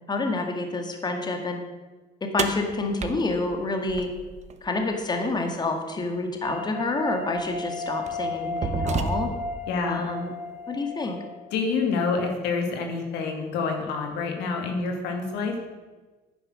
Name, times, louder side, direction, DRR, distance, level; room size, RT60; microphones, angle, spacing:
voice 1, 0.1-1.6 2.2-4.1 4.6-9.3 9.9-10.3 10.7-11.2, left 2 dB, 25° left, 4 dB, 1.9 m, -28 dB
sound 1, 2.4-4.6 6.4-6.5 7.4-7.6 8.1-9.6, right 5 dB, 40° right, 1.0 m, -31 dB
sound 2, 6.4-11.6, left 2 dB, 10° right, 3.2 m, -34 dB
voice 2, 9.7-10.0 11.5-15.6, left 4 dB, 85° left, 3 dB, 2.4 m, -27 dB
10.0 x 9.8 x 6.4 m, 1.2 s
cardioid pair, 110°, 17 cm